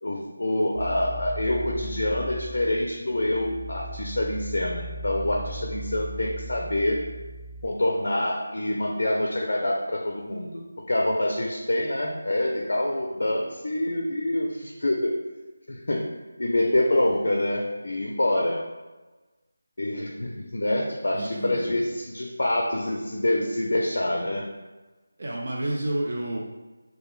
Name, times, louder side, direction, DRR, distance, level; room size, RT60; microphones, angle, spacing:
voice 1, 0.0-7.0 7.6-10.6 10.9-15.1 15.7-16.1 16.4-18.6 19.8-24.5, left 1 dB, 70° left, 0 dB, 0.4 m, -26 dB
sound 1, 0.7-7.7, equal, ahead, 0.8 m, -38 dB
voice 2, 21.1-21.9 25.2-26.4, right 1 dB, 55° right, -2 dB, 0.3 m, -30 dB
2.1 x 2.0 x 3.0 m, 1.2 s
figure-of-eight pair, 165°, 0 cm